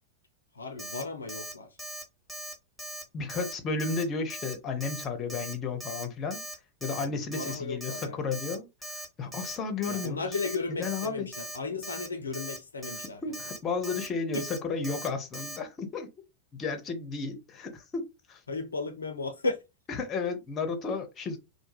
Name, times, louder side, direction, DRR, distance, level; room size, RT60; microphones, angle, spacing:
voice 1, 0.5-1.8 6.9-8.3 9.9-13.4 14.3-14.4 18.5-19.6, left 3 dB, 75° left, 0.4 m, -35 dB
Alarm, 0.8-1.0 1.3-1.5 1.8-2.0 2.3-2.5 2.8-3.0 3.3-3.5 3.8-4.0 4.3-4.5 4.8-5.0 5.3-5.5 5.8-6.0 6.3-6.5 6.8-7.0 7.3-7.5 7.8-8.0 8.3-8.5 8.8-9.1 9.3-9.6 9.8-10.1 10.3-10.6 10.8-11.1 11.3-11.6 11.8-12.1 12.3-12.6 12.8-13.1 13.3-13.6 13.8-14.1 14.3-14.6 14.8-15.1 15.3-15.6, right 1 dB, ahead, 0.8 m, -39 dB
voice 2, 3.1-6.4 6.8-10.3 10.8-11.3 13.2-16.1 16.5-18.4 20.0-21.4, left 4 dB, 25° left, 0.6 m, -33 dB
2.2 x 2.1 x 3.0 m
figure-of-eight pair, 90°, 0 cm